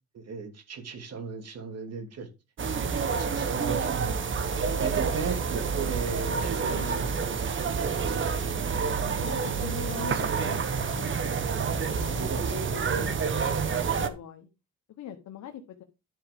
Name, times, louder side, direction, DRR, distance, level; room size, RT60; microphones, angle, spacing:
voice 1, 0.1-2.3 3.2-4.2 4.8-8.8 9.7-10.4 11.5-12.7 13.8-13.9, right 5 dB, 55° right, 6 dB, 2.7 m, -37 dB
sound 1, 2.6-14.1, right 5 dB, 40° right, 1.1 m, -28 dB
voice 2, 6.7-7.0 9.2-11.3 11.7-13.6 14.0-14.5 15.0-15.8, left 9 dB, 70° left, 5 dB, 1.2 m, -42 dB
10.5 x 4.8 x 5.1 m, 0.27 s
cardioid pair, 90°, 30 cm